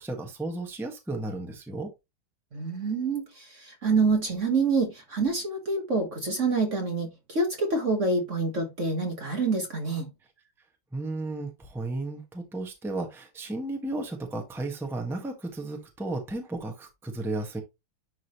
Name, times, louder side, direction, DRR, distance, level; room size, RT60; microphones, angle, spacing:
voice 1, 0.0-1.9 10.9-17.6, right 2 dB, ahead, 1.2 m, -34 dB
voice 2, 2.5-10.1, right 3 dB, 40° right, 1.5 m, -27 dB
10.5 x 3.8 x 3.0 m
omnidirectional pair, 2.2 m